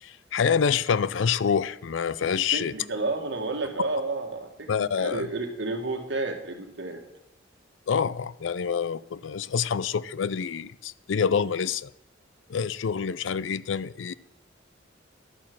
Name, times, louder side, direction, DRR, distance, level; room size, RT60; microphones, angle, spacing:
voice 1, 0.0-2.7 4.7-5.2 7.9-11.9 12.5-14.1, left 6 dB, 70° left, 0.4 m, -27 dB
voice 2, 2.5-7.0 9.3-9.5, right 3 dB, 65° right, 1.9 m, -31 dB
11.5 x 8.5 x 6.2 m
head